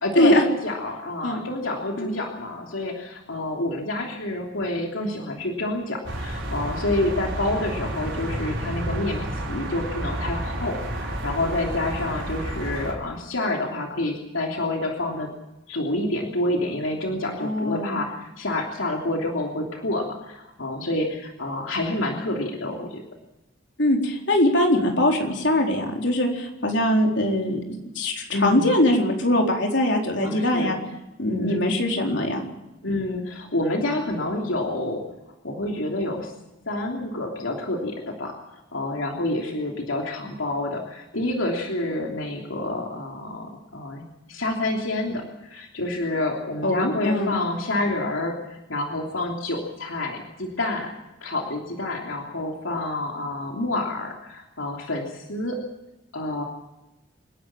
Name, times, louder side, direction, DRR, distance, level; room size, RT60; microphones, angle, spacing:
voice 1, 0.0-15.3 15.7-23.0 28.3-28.7 30.2-30.8 31.3-31.6 32.8-35.0 35.4-36.3 36.7-38.3 38.7-50.9 51.2-55.6 56.1-56.4, left 2 dB, 85° left, 1 dB, 3.1 m, -28 dB
sound 1, 6.0-12.9, right 1 dB, 80° right, 5.7 m, -30 dB
voice 2, 17.4-18.0 23.8-30.8 31.2-32.4 46.6-47.4, left 1 dB, 65° left, 1 dB, 4.2 m, -22 dB
27.0 x 11.0 x 8.8 m, 0.97 s
head